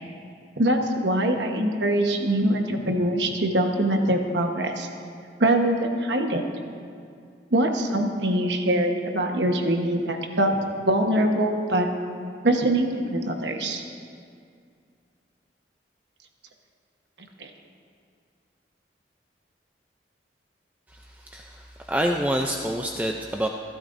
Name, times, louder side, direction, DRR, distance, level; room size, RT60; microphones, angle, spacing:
voice 1, 0.6-4.9 5.4-6.4 7.5-11.9 12.4-13.8 17.4-17.5, right 1 dB, 75° right, 3 dB, 1.2 m, -23 dB
voice 2, 20.9-23.5, equal, 10° right, 2 dB, 0.4 m, -27 dB
21.5 x 12.0 x 2.6 m, 2.3 s
head